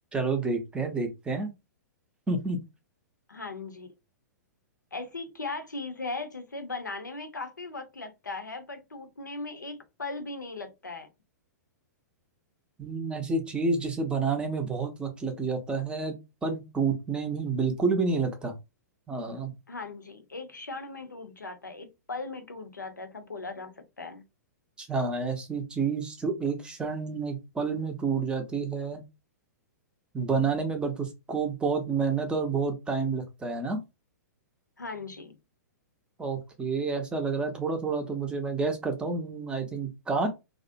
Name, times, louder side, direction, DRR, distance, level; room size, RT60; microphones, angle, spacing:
voice 1, 0.1-1.5 2.3-2.6 12.8-18.5 19.1-19.5 24.8-29.0 30.1-33.8 36.2-40.3, right 4 dB, 10° right, 0.6 m, -29 dB
voice 2, 3.3-3.9 4.9-11.1 19.7-24.2 34.8-35.4, left 3 dB, 85° left, 0.6 m, -38 dB
2.4 x 2.0 x 2.5 m
figure-of-eight pair, 110°, 10 cm